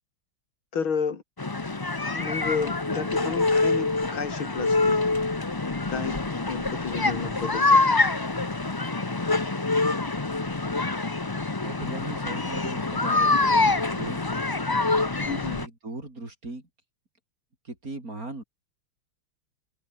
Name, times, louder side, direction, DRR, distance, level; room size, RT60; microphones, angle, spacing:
voice 1, 0.7-1.2 2.1-5.0 5.9-7.9 15.2-15.6, left 6 dB, 75° left, 3.3 m, -32 dB
sound 1, 1.4-15.6, left 3 dB, 35° left, 0.3 m, -25 dB
voice 2, 11.6-14.5 15.6-16.7 17.6-18.4, right 2 dB, 40° right, 5.8 m, -39 dB
open air
omnidirectional pair, 2.3 m